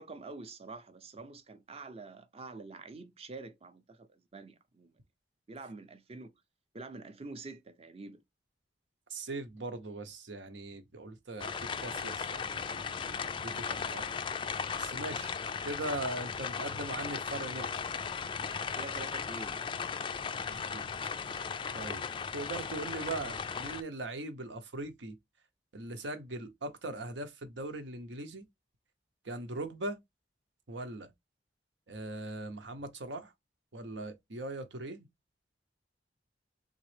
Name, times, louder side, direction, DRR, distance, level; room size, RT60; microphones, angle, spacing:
voice 1, 0.0-4.9 5.5-6.3 6.7-8.2 18.8-19.8, right 3 dB, 35° right, 0.6 m, -46 dB
voice 2, 9.1-14.2 14.8-15.3 15.6-17.7 20.5-20.8 21.7-22.1 22.3-25.2 25.7-28.5 29.2-30.0 30.7-31.1 31.9-33.3 33.7-35.1, right 2 dB, 85° right, 0.9 m, -40 dB
sound 1, 11.4-23.8, left 6 dB, 25° left, 0.3 m, -37 dB
3.9 x 3.6 x 3.3 m
head